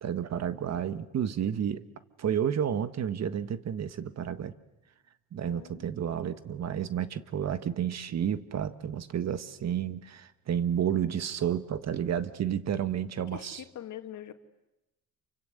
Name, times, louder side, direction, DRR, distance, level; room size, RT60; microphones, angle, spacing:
voice 1, 0.0-1.8 2.2-4.5 5.3-13.6, right 9 dB, 60° right, 12 dB, 1.6 m, -31 dB
voice 2, 5.4-6.0 13.2-14.3, left 11 dB, 75° left, 7 dB, 2.2 m, -44 dB
29.0 x 25.0 x 8.2 m, 0.95 s
cardioid pair, 90°, 30 cm